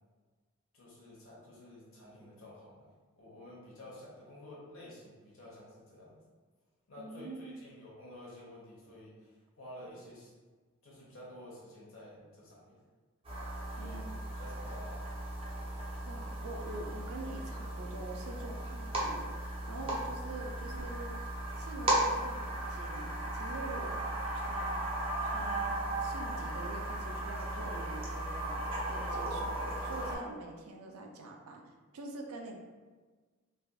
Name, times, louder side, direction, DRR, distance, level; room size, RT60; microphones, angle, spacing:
voice 1, 0.7-6.2 6.9-10.3 10.8-12.8 13.7-14.0 14.3-15.0 19.7-20.0, left 1 dB, 70° left, -6 dB, 1.0 m, -51 dB
voice 2, 7.0-7.7 13.8-14.2 16.0-21.1 21.6-24.0 24.3-24.8 25.3-32.6, right 2 dB, 85° right, 2 dB, 0.4 m, -45 dB
sound 1, 13.2-30.2, right 1 dB, 25° right, 0.5 m, -36 dB
3.3 x 2.5 x 2.3 m, 1.4 s
head